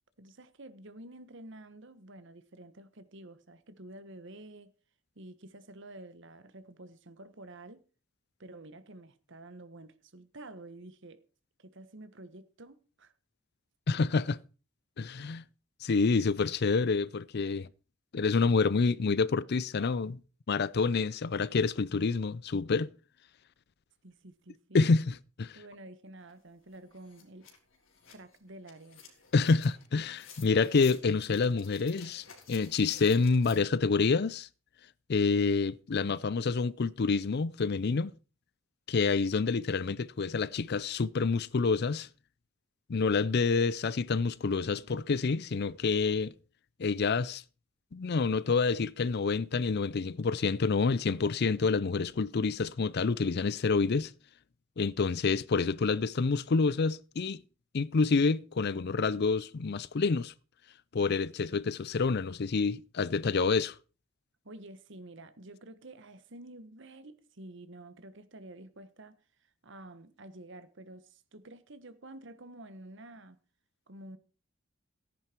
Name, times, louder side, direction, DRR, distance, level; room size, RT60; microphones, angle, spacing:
voice 1, 0.2-4.7 5.1-7.8 8.4-11.2 11.6-13.1 24.0-25.0 25.5-27.5 28.1-29.2 63.2-63.5 64.4-69.1 69.6-73.4 73.9-74.2, right 1 dB, 65° right, 1.4 m, -49 dB
voice 2, 13.9-14.4 15.0-15.4 15.8-17.7 18.1-20.2 20.5-22.9 24.7-25.6 29.3-34.5 35.1-38.1 38.9-42.1 42.9-46.3 46.8-47.4 47.9-54.1 54.8-57.4 57.7-60.3 60.9-63.7, left 4 dB, 55° left, 0.5 m, -28 dB
sound 1, 26.3-26.4 26.7-33.6, left 6 dB, 80° left, 3.6 m, -53 dB
14.5 x 10.5 x 4.5 m
head